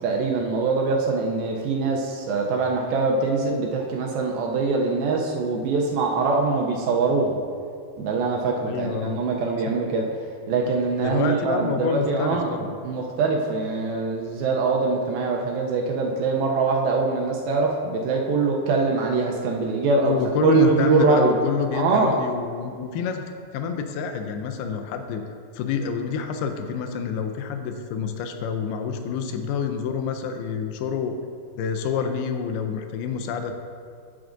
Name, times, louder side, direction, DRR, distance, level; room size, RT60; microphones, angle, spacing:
voice 1, 0.0-7.4 8.0-10.1 10.5-12.5 12.8-21.3 21.7-22.2, right 4 dB, 80° right, 0 dB, 2.3 m, -23 dB
voice 2, 8.6-9.2 11.0-12.7 20.0-23.2 23.5-31.2 31.6-33.6, left 6 dB, 85° left, 5 dB, 2.4 m, -27 dB
12.5 x 6.0 x 2.6 m, 2.3 s
omnidirectional pair, 4.6 m